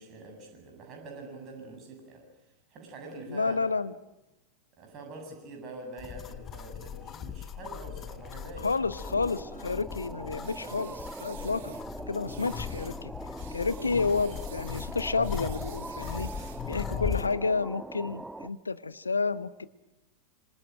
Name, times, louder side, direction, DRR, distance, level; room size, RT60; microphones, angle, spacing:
voice 1, 0.0-2.3 2.7-3.6 4.8-8.7, right 2 dB, 35° right, 2 dB, 7.8 m, -45 dB
voice 2, 3.3-3.9 8.6-11.8 12.1-13.1 13.5-16.3 16.7-19.7, left 4 dB, 75° left, 15 dB, 1.1 m, -30 dB
sound 1, 6.0-17.3, left 8 dB, 25° left, 1.3 m, -39 dB
sound 2, 9.0-18.5, right 2 dB, 5° right, 1.1 m, -42 dB
sound 3, 10.4-11.9 12.3-13.0 13.4-16.7, right 11 dB, 55° right, 2.2 m, -51 dB
27.0 x 25.0 x 8.9 m, 0.95 s
figure-of-eight pair, 90°, 0 cm